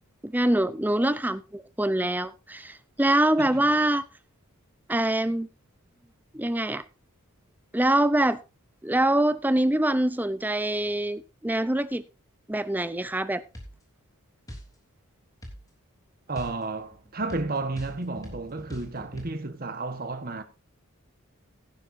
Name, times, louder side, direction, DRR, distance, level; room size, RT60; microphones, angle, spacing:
voice 1, 0.2-4.0 4.9-5.5 6.3-6.8 7.7-8.4 8.8-12.0 12.5-13.4, right 1 dB, 10° right, 0.6 m, -24 dB
sound 1, 13.5-13.8 14.5-14.7 15.4-15.6 16.3-19.3, equal, 15° left, 3.1 m, -42 dB
voice 2, 16.3-20.4, right 3 dB, 40° right, 1.3 m, -32 dB
16.5 x 10.5 x 2.7 m
head